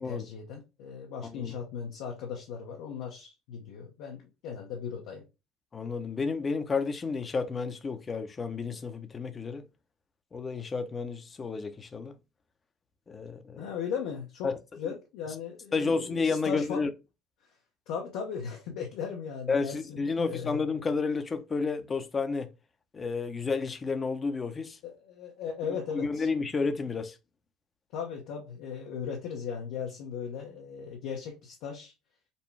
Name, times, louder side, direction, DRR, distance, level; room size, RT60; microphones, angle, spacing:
voice 1, 0.0-5.2 13.6-14.5 14.8-16.8 17.9-20.6 24.8-26.3 27.9-31.9, left 7 dB, 70° left, 0.9 m, -37 dB
voice 2, 5.7-9.6 10.3-12.2 13.1-13.7 14.4-14.6 14.8-15.0 15.7-16.9 19.5-22.5 22.9-24.8 25.9-27.2, left 4 dB, 30° left, 0.8 m, -31 dB
5.3 x 2.2 x 3.3 m
hypercardioid pair, 70°, 0 cm